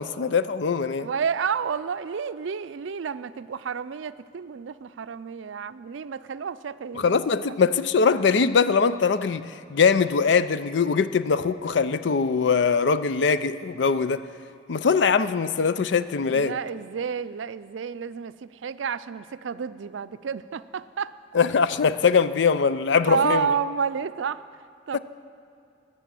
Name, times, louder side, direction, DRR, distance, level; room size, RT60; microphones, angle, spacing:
voice 1, 0.0-1.1 6.9-9.4 9.7-14.2 14.7-16.5 21.3-23.5 24.9-25.0, left 5 dB, 70° left, 14 dB, 0.5 m, -22 dB
voice 2, 1.0-7.2 16.3-21.1 23.1-24.4 24.9-25.0, right 6 dB, 85° right, 14 dB, 0.4 m, -30 dB
19.5 x 7.0 x 7.6 m, 2.5 s
head